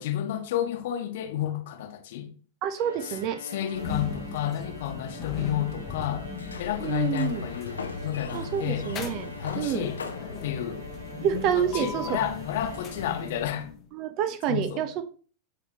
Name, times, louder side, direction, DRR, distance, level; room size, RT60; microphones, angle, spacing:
voice 1, 0.0-2.3 3.0-3.1 3.4-6.3 6.6-8.9 9.4-10.0 10.4-10.8 11.5-13.7 14.5-14.9, left 11 dB, 55° left, 1.2 m, -31 dB
voice 2, 2.6-3.4 6.8-7.4 8.3-9.3 9.5-9.8 11.2-12.1 13.9-15.0, right 8 dB, 40° right, 0.8 m, -28 dB
Bowed string instrument, 2.7-13.8, right 1 dB, 75° right, 1.3 m, -45 dB
sound 1, 3.7-13.9, left 5 dB, 30° left, 0.9 m, -38 dB
Sliding door, 6.3-12.0, left 5 dB, 70° left, 0.7 m, -39 dB
7.7 x 4.1 x 2.9 m
figure-of-eight pair, 90°, 0 cm